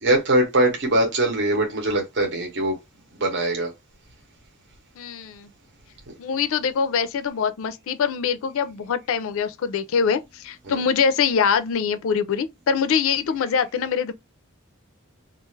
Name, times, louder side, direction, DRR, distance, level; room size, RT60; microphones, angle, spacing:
voice 1, 0.0-2.7 3.2-3.7 6.1-6.2 10.7-10.8, right 1 dB, 55° right, 0.8 m, -22 dB
voice 2, 5.0-5.5 6.2-14.1, left 6 dB, 65° left, 0.4 m, -23 dB
2.4 x 2.3 x 3.1 m
head